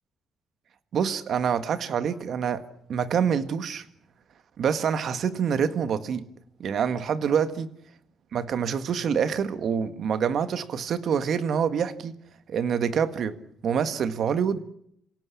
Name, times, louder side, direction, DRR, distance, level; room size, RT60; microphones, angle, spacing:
voice 1, 0.9-2.6 2.9-3.8 4.6-6.2 6.6-7.7 8.3-12.1 12.5-14.6, right 7 dB, 65° right, 12 dB, 1.7 m, -26 dB
27.0 x 17.5 x 8.5 m, 0.71 s
cardioid pair, 90°, 0 cm